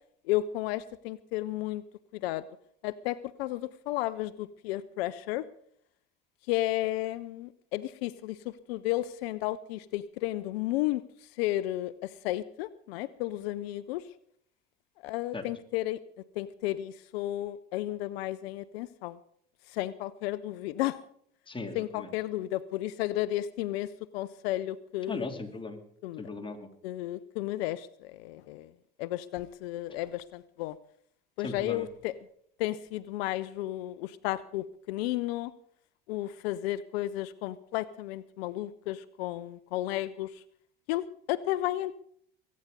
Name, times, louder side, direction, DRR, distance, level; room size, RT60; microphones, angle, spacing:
voice 1, 0.3-1.8 2.1-2.4 2.8-5.4 6.5-11.0 11.4-14.0 15.0-16.0 16.4-19.2 19.7-21.0 21.7-25.3 26.0-26.2 26.8-28.7 29.0-30.8 31.4-32.2 32.6-35.5 36.1-40.4 40.9-42.0, left 15 dB, 80° left, 17 dB, 0.6 m, -33 dB
voice 2, 21.5-22.1 25.1-25.8 26.2-26.7 31.4-31.9, left 3 dB, 15° left, 4 dB, 2.9 m, -38 dB
22.0 x 9.5 x 5.2 m, 0.67 s
hypercardioid pair, 70°, 30 cm